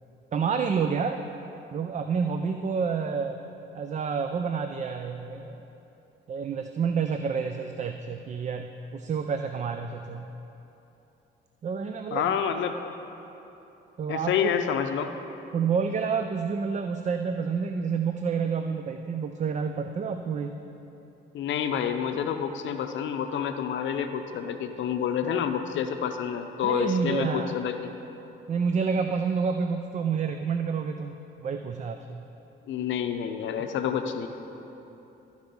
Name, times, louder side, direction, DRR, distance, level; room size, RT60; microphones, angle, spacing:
voice 1, 0.3-1.2 1.7-3.4 3.7-5.6 6.3-10.3 11.6-12.4 14.0-14.5 15.5-20.6 25.2-25.4 26.6-27.5 28.5-32.2 33.6-33.7, right 6 dB, 35° right, 6 dB, 0.4 m, -29 dB
voice 2, 12.1-12.8 14.1-15.1 21.3-27.9 32.7-34.3, left 8 dB, 70° left, 7 dB, 0.6 m, -28 dB
13.0 x 4.7 x 5.3 m, 3.0 s
cardioid pair, 90°, 20 cm